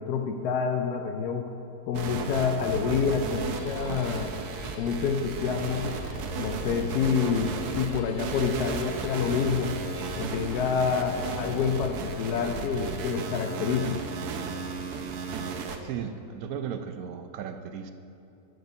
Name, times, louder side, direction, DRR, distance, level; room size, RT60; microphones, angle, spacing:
voice 1, 0.0-1.5 1.9-4.3 4.8-5.9 6.4-9.8 10.2-14.0, left 6 dB, 90° left, 5 dB, 1.2 m, -28 dB
sound 1, 1.9-15.8, right 5 dB, 90° right, 1.2 m, -34 dB
sound 2, 3.3-13.0, right 1 dB, 25° right, 1.0 m, -44 dB
voice 2, 15.8-17.9, right 8 dB, 70° right, 8 dB, 1.0 m, -35 dB
7.9 x 7.8 x 5.3 m, 2.8 s
omnidirectional pair, 1.7 m